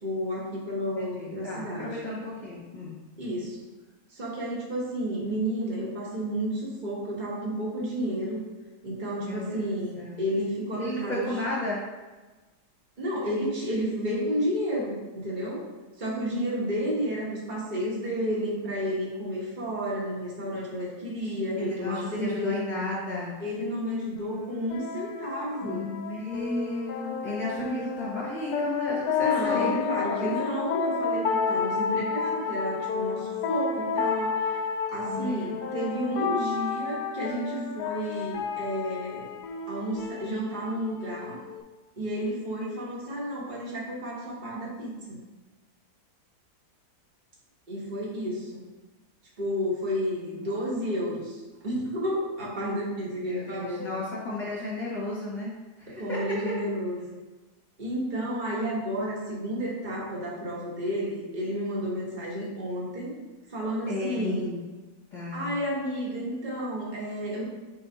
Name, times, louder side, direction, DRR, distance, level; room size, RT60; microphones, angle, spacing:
voice 1, 0.0-2.0 3.2-3.6 4.1-8.4 8.8-11.3 13.0-15.6 16.0-22.6 23.4-25.9 27.6-27.8 29.2-34.6 34.9-39.2 39.7-41.4 42.0-45.2 47.7-48.6 49.4-53.8 55.9-57.0 57.8-63.1 63.5-64.5 65.3-67.4, equal, 30° right, -5 dB, 1.5 m, -31 dB
voice 2, 1.0-3.0 9.2-9.6 10.0-10.1 10.8-11.8 21.6-23.4 25.6-29.8 30.1-30.4 35.1-35.5 36.1-36.2 50.5-50.6 53.2-55.5 55.8-56.2 63.9-64.6 65.1-65.5, left 2 dB, 25° left, -7 dB, 1.4 m, -33 dB
sound 1, 24.2-41.6, left 6 dB, 70° left, 1.1 m, -31 dB
4.4 x 4.0 x 5.6 m, 1.2 s
omnidirectional pair, 1.8 m